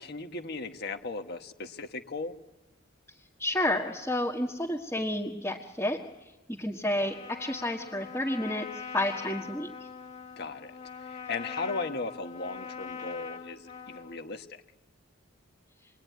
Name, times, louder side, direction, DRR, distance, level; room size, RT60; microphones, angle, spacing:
voice 1, 0.0-2.3 10.4-10.7 11.0-14.6, left 3 dB, 50° left, 7 dB, 1.5 m, -37 dB
voice 2, 3.4-6.0 6.6-8.7 8.9-9.7, left 1 dB, 10° left, -1 dB, 1.6 m, -30 dB
Trumpet, 7.0-14.2, left 6 dB, 35° left, 2.2 m, -42 dB
27.5 x 22.5 x 9.4 m, 1.1 s
head